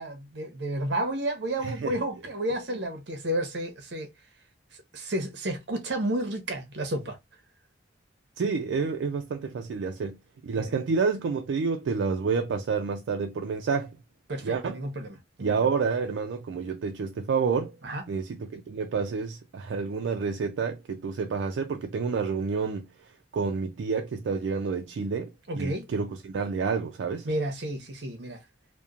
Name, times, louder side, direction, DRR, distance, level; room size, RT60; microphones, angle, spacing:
voice 1, 0.0-4.1 4.9-7.2 10.6-10.7 14.3-15.7 17.8-18.0 25.5-25.9 27.2-28.4, right 1 dB, 65° right, 0.7 m, -31 dB
voice 2, 1.6-1.9 8.4-10.2 10.4-13.9 14.4-14.8 15.4-17.7 18.1-22.9 23.3-27.3, right 5 dB, 85° right, 0.3 m, -29 dB
2.8 x 2.1 x 2.4 m
head